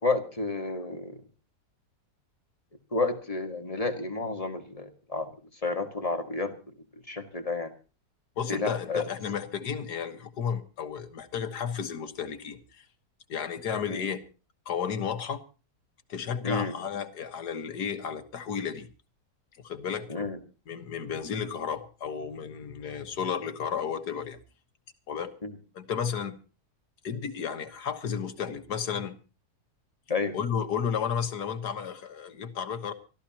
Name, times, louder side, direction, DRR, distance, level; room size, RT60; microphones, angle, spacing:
voice 1, 0.0-1.2 2.9-5.3 5.6-6.7 7.1-7.7 8.5-9.0 13.9-14.1 16.4-16.7 20.1-20.4 25.4-25.5 30.1-30.4, left 3 dB, 20° left, 1.7 m, -30 dB
voice 2, 8.4-12.9 13.3-14.2 14.7-15.4 16.1-18.9 19.6-20.3 20.7-24.4 25.1-25.3 25.8-26.4 27.0-29.2 30.3-32.9, left 7 dB, 80° left, 1.9 m, -33 dB
25.0 x 14.0 x 2.9 m
omnidirectional pair, 1.7 m